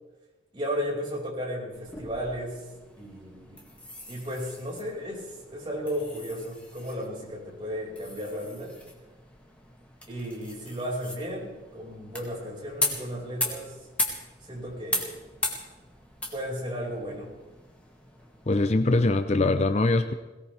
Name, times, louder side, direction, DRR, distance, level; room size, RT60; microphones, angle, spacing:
voice 1, 0.5-2.6 3.0-3.6 4.1-8.8 10.1-13.7 14.5-15.2 16.3-17.3, equal, 25° right, -4 dB, 5.3 m, -34 dB
sound 1, 1.7-18.6, left 1 dB, 5° left, 2.1 m, -38 dB
voice 2, 18.5-20.1, left 2 dB, 35° left, 9 dB, 0.6 m, -22 dB
22.0 x 18.0 x 3.4 m, 1.1 s
head